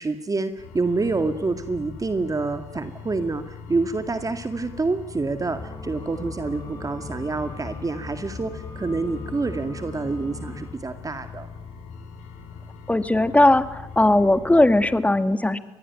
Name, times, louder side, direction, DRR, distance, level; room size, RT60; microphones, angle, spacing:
voice 1, 0.0-11.5, right 3 dB, 30° right, 9 dB, 2.1 m, -27 dB
sound 1, 0.6-15.0, left 5 dB, 85° left, 4.5 m, -41 dB
sound 2, 5.5-10.7, left 3 dB, 30° left, 3.6 m, -39 dB
voice 2, 12.9-15.6, left 1 dB, 10° left, 12 dB, 2.0 m, -18 dB
26.0 x 20.0 x 9.5 m, 0.89 s
supercardioid pair, 65°, 12 cm